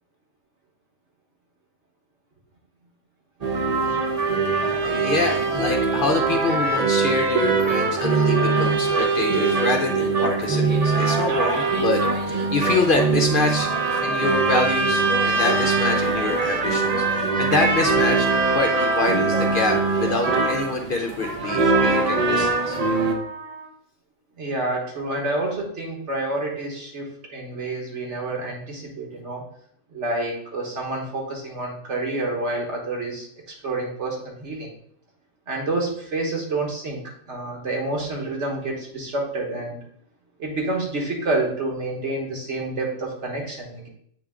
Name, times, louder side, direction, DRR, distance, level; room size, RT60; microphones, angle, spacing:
sound 1, 3.4-23.2, right 3 dB, 40° right, 0.6 m, -22 dB
voice 1, 4.8-12.0 12.3-13.7 14.0-18.3 18.5-22.8, left 3 dB, 55° left, 3 dB, 0.7 m, -26 dB
Trumpet, 7.6-20.7 21.2-23.7, right 2 dB, 85° right, 2.6 m, -36 dB
voice 2, 24.4-29.4 29.9-33.3 33.6-34.7 35.5-39.8 40.4-43.9, right 2 dB, 65° right, 0 dB, 1.7 m, -28 dB
7.9 x 3.4 x 3.6 m, 0.65 s
omnidirectional pair, 1.3 m